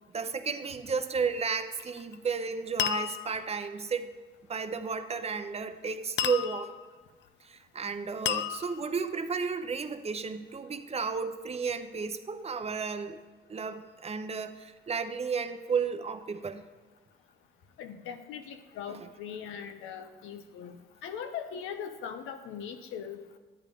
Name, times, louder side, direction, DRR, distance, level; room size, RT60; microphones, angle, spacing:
voice 1, 0.1-4.1 4.5-6.7 7.4-13.2 13.5-16.6 18.9-19.1, right 5 dB, 30° right, 9 dB, 0.6 m, -33 dB
sound 1, 1.7-2.2 2.8-3.5 6.2-6.9 8.3-9.1, left 10 dB, 65° left, 0.5 m, -32 dB
voice 2, 17.8-20.8 21.0-23.2, left 7 dB, 85° left, 7 dB, 0.8 m, -40 dB
10.0 x 9.6 x 3.5 m, 1.3 s
cardioid pair, 90°, 20 cm